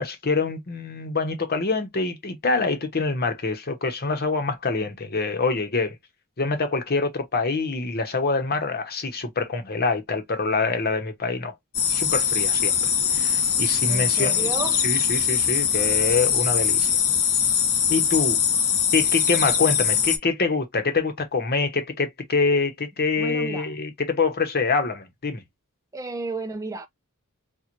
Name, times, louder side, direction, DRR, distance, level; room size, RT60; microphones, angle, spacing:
voice 1, 0.0-6.0 6.4-11.5 11.9-12.8 13.1-14.5 14.8-16.9 17.9-18.4 18.9-25.4, left 4 dB, 45° left, 1.0 m, -25 dB
sound 1, 11.7-20.2, left 7 dB, 85° left, 1.0 m, -22 dB
voice 2, 13.9-14.8 23.2-23.7 25.9-26.9, right 3 dB, 15° right, 0.4 m, -32 dB
4.5 x 2.4 x 2.5 m
head